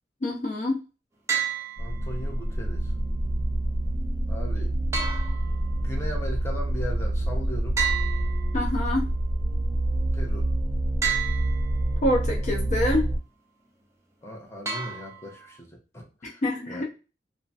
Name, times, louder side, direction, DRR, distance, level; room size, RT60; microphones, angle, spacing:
voice 1, 0.2-0.8 8.5-9.1 12.0-13.1 16.4-16.8, left 1 dB, 45° left, 0.5 m, -26 dB
sound 1, 1.3-2.3 4.9-6.0 7.8-9.0 11.0-12.0 14.7-15.6, right 7 dB, 15° right, 0.5 m, -31 dB
voice 2, 1.8-2.9 4.3-4.7 5.7-7.8 10.1-10.5 14.2-16.8, equal, 15° left, 0.8 m, -38 dB
sound 2, 1.8-13.2, right 1 dB, 35° right, 0.9 m, -27 dB
3.0 x 2.2 x 2.6 m
head